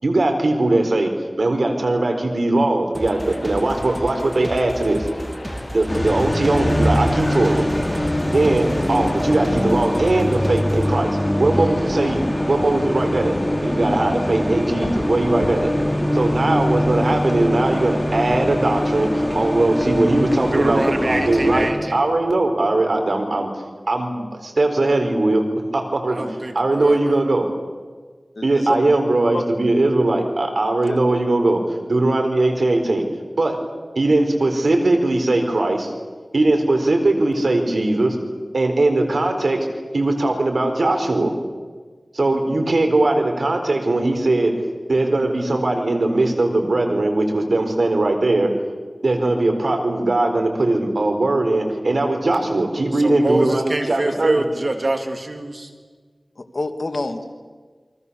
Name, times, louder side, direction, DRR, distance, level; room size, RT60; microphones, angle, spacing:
voice 1, 0.0-1.1 1.4-5.1 5.7-7.6 8.3-13.4 13.6-15.7 16.1-23.5 23.9-25.4 25.7-26.2 26.5-27.5 28.4-33.1 33.4-33.6 34.0-35.9 36.3-38.2 38.5-39.7 39.9-41.3 42.1-44.6 44.9-48.5 49.0-54.4, right 2 dB, 80° right, 5 dB, 4.2 m, -20 dB
sound 1, 2.9-11.0, right 1 dB, 20° right, 2.5 m, -34 dB
sound 2, 3.1-10.2, left 1 dB, 45° left, 5.3 m, -36 dB
sound 3, 5.9-21.7, equal, 15° left, 4.8 m, -22 dB
voice 2, 20.5-22.1 26.1-27.1 52.9-55.7, right 2 dB, 65° right, 4 dB, 3.4 m, -25 dB
voice 3, 28.3-28.8 29.3-29.4 30.8-31.0 56.4-57.2, left 2 dB, 65° left, 6 dB, 2.5 m, -27 dB
28.5 x 24.5 x 7.1 m, 1.5 s
wide cardioid pair, 45°, 0 cm